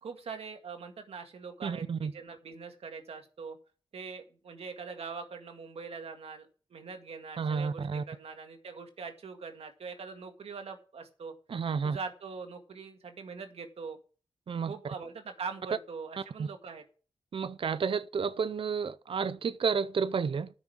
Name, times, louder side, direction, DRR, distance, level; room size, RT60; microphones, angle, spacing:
voice 1, 0.0-3.6 3.9-11.3 11.8-14.0 14.6-16.8, right 5 dB, 85° right, 2.0 m, -42 dB
voice 2, 1.6-2.1 7.4-8.0 11.5-12.0 14.5-14.7 16.4-16.5 17.3-20.5, right 5 dB, 65° right, 0.6 m, -31 dB
12.5 x 6.3 x 7.4 m
cardioid pair, 65°, 10 cm